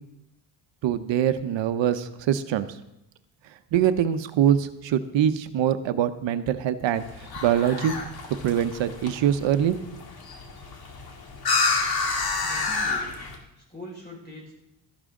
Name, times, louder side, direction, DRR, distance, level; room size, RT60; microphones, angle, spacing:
voice 1, 0.8-2.7 3.7-7.0 7.4-8.0 8.3-9.8, right 10 dB, 80° right, 11 dB, 0.9 m, -23 dB
sound 1, 6.9-13.4, left 4 dB, 55° left, 2.0 m, -29 dB
voice 2, 12.4-13.1 13.7-14.5, equal, 25° left, -2 dB, 4.8 m, -41 dB
13.5 x 11.0 x 3.7 m, 0.87 s
cardioid pair, 130°, 44 cm